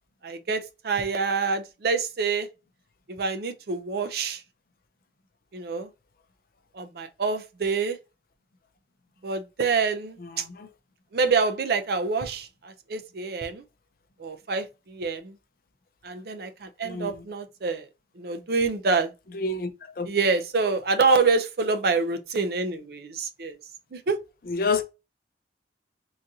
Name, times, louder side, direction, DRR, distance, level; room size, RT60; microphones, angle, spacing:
voice 1, 0.2-2.5 3.1-4.4 5.5-5.9 6.8-8.0 9.2-10.4 11.1-13.6 14.2-15.3 16.0-17.9 18.2-19.1 20.1-23.6 23.9-24.2, right 4 dB, 55° right, 0.5 m, -26 dB
voice 2, 10.2-10.7 16.8-17.2 19.3-20.1 24.5-24.8, left 4 dB, 50° left, 0.5 m, -29 dB
3.9 x 2.5 x 2.7 m
head